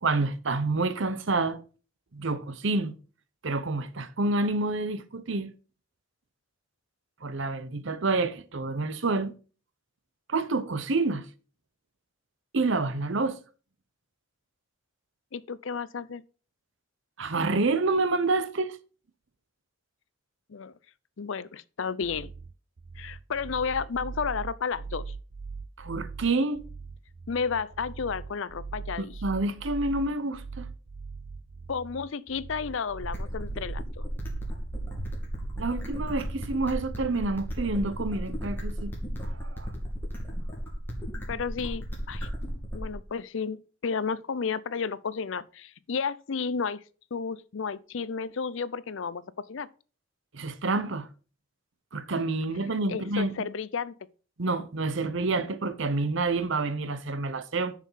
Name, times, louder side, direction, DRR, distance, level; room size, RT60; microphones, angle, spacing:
voice 1, 0.0-1.6 2.1-2.9 3.4-5.5 7.2-9.3 10.3-11.2 12.5-13.4 17.2-18.8 25.8-26.6 29.0-30.7 35.6-38.9 39.2-39.7 50.3-51.1 51.9-53.3 54.4-57.7, right 3 dB, 60° right, 0.8 m, -28 dB
voice 2, 15.3-16.2 20.5-20.7 21.2-22.3 23.0-25.1 27.3-29.1 31.7-34.1 41.3-42.3 42.7-46.8 47.1-49.7 52.9-53.9, left 5 dB, 65° left, 0.5 m, -32 dB
sound 1, 22.0-37.0, right 4 dB, 45° right, 0.4 m, -40 dB
sound 2, 33.0-43.0, equal, 10° left, 2.6 m, -35 dB
7.0 x 6.5 x 5.6 m
head